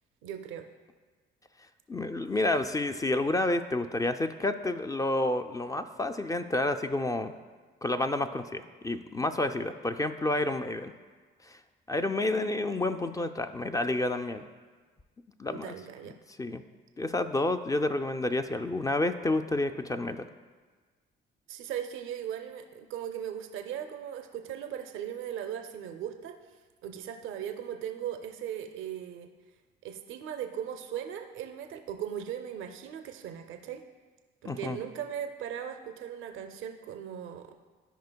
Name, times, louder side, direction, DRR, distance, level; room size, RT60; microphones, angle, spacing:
voice 1, 0.2-0.7 12.0-13.1 15.5-16.2 21.5-26.4 26.8-29.3 29.8-33.8 34.4-37.6, right 9 dB, 85° right, 6 dB, 0.5 m, -38 dB
voice 2, 1.9-7.3 7.8-10.9 11.5-11.6 11.9-14.4 15.4-15.7 16.4-16.6 17.0-20.2 34.4-34.8, left 2 dB, 15° left, 8 dB, 0.3 m, -29 dB
13.0 x 5.0 x 2.2 m, 1.4 s
cardioid pair, 90°, 20 cm